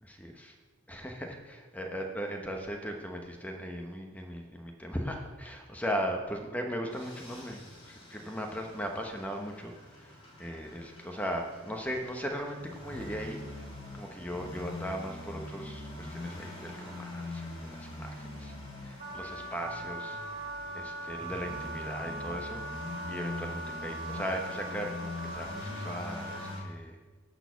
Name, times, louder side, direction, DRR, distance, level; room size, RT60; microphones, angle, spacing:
voice 1, 0.0-0.5 0.9-10.1 10.4-13.7 13.9-18.5 18.8-20.5 20.7-27.0, equal, 5° left, 2 dB, 0.9 m, -38 dB
sound 1, 6.9-26.6, left 2 dB, 25° left, 2.3 m, -43 dB
Wind instrument woodwind instrument, 19.0-26.6, right 1 dB, 35° right, 1.0 m, -40 dB
11.0 x 4.3 x 6.9 m, 1.3 s
head